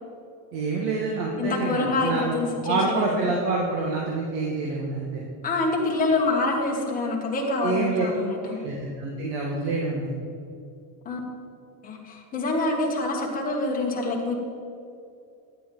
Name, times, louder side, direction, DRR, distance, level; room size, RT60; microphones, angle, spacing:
voice 1, 0.5-2.4 2.6-5.3 7.6-8.1 8.6-10.1, right 3 dB, 70° right, -2 dB, 1.7 m, -27 dB
voice 2, 1.4-3.3 5.4-8.6 11.0-11.2 11.8-14.4, left 2 dB, 15° left, -1 dB, 1.4 m, -26 dB
11.5 x 10.0 x 3.8 m, 2.5 s
cardioid pair, 170°, 48 cm